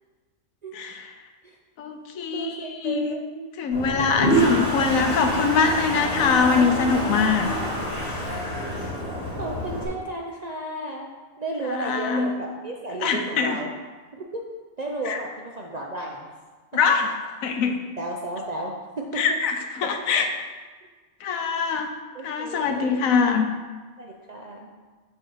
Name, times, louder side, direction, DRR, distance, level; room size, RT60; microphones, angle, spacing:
voice 1, 0.7-1.1 1.8-3.1 3.6-7.5 11.7-12.3 13.0-13.6 15.1-15.2 16.7-17.1 17.4-17.7 19.2-20.3 21.2-21.9 22.2-23.5, left 5 dB, 80° left, 5 dB, 1.1 m, -23 dB
voice 2, 2.3-3.5 9.4-11.1 11.4-13.7 14.1-14.4 14.8-16.3 18.0-19.4 20.1-20.3 21.7-21.8 22.1-23.1 24.0-24.7, right 2 dB, 50° right, -1 dB, 0.5 m, -33 dB
Toilet flush, 3.7-9.9, right 1 dB, 55° left, 2.3 m, -26 dB
6.9 x 3.5 x 6.1 m, 1.4 s
omnidirectional pair, 1.4 m